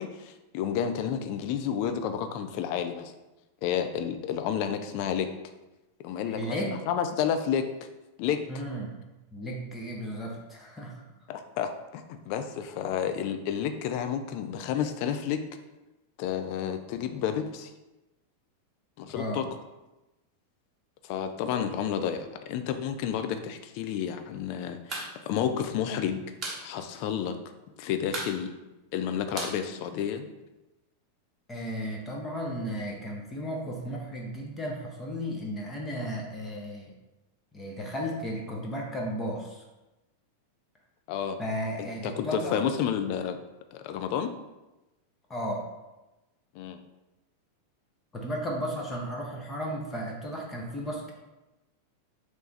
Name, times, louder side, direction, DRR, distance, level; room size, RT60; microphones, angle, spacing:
voice 1, 0.0-3.1 3.6-5.5 6.0-7.9 8.2-8.4 11.3-15.4 16.2-17.7 19.0-19.4 21.0-26.2 26.6-27.4 27.8-28.5 28.9-30.3 41.1-41.4 42.0-43.4 43.7-44.3 46.5-46.8, left 8 dB, 45° left, 8 dB, 0.4 m, -30 dB
voice 2, 6.3-6.7 8.5-9.0 9.3-11.0 19.2-19.4 31.5-36.9 37.5-39.6 41.4-42.6 45.3-45.7 48.1-51.1, equal, 15° left, -1 dB, 0.7 m, -34 dB
sound 1, 24.9-25.1 25.4-25.5 25.8-26.6 27.0-27.1 27.3-27.7 28.1-30.4, right 2 dB, 25° right, 0.9 m, -37 dB
3.3 x 3.1 x 3.9 m, 1.0 s
figure-of-eight pair, 90°, 0 cm